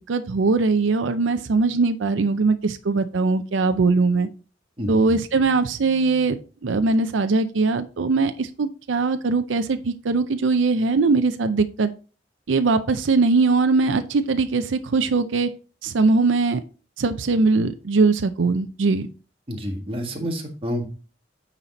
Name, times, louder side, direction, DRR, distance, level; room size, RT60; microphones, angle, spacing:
voice 1, 0.1-4.3 4.9-11.9 12.5-15.5 15.8-16.6 17.0-19.1, right 3 dB, 80° right, 10 dB, 0.5 m, -21 dB
voice 2, 4.8-5.2 19.5-20.9, equal, 30° right, 2 dB, 1.7 m, -29 dB
9.0 x 4.2 x 4.1 m, 0.36 s
head